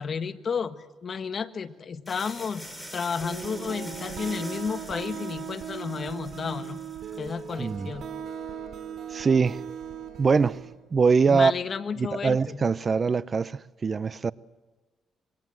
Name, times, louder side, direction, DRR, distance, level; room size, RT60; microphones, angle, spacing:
voice 1, 0.0-6.8 7.2-8.1 11.3-12.6, left 6 dB, 45° left, 1.4 m, -32 dB
sound 1, 2.1-7.8, equal, ahead, 5.3 m, -44 dB
sound 2, 3.2-10.7, right 8 dB, 60° right, 3.7 m, -38 dB
voice 2, 7.6-7.9 9.1-9.6 10.2-10.6 10.9-11.5 12.0-14.3, right 5 dB, 35° right, 0.7 m, -23 dB
25.5 x 22.5 x 7.7 m
cardioid pair, 90°, 0 cm